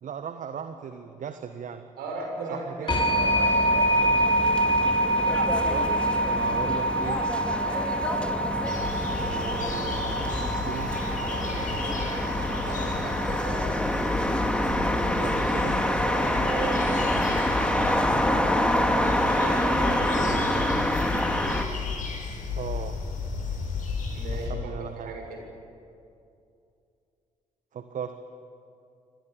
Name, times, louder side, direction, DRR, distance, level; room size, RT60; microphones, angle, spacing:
voice 1, 0.0-1.8 2.5-3.0 5.7-7.2 9.1-11.1 15.1-15.8 20.1-20.8 22.5-23.0 24.3-25.1 27.7-28.2, right 7 dB, 50° right, 8 dB, 1.4 m, -37 dB
voice 2, 2.0-3.9 7.6-8.0 11.2-12.0 12.7-13.7 15.8-17.2 19.3-20.5 24.1-24.7 25.0-25.4, right 3 dB, 65° right, 1 dB, 7.0 m, -37 dB
sound 1, 2.9-13.5, right 1 dB, 25° left, 5.0 m, -26 dB
sound 2, 2.9-21.6, left 1 dB, 5° left, 3.0 m, -27 dB
sound 3, 8.6-24.5, left 4 dB, 50° left, 6.8 m, -34 dB
28.5 x 26.0 x 7.2 m, 2.6 s
figure-of-eight pair, 45°, 17 cm